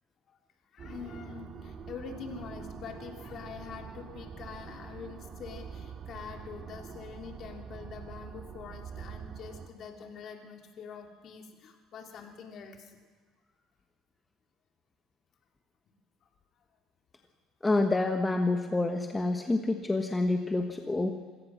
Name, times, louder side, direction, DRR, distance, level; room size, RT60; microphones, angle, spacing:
voice 1, 0.7-13.0, left 6 dB, 50° left, 3 dB, 2.9 m, -45 dB
sound 1, 0.8-9.7, right 6 dB, 40° right, 2.1 m, -45 dB
voice 2, 17.6-21.1, left 2 dB, 15° left, 4 dB, 1.4 m, -28 dB
26.5 x 16.5 x 6.2 m, 1.5 s
supercardioid pair, 110°, 0 cm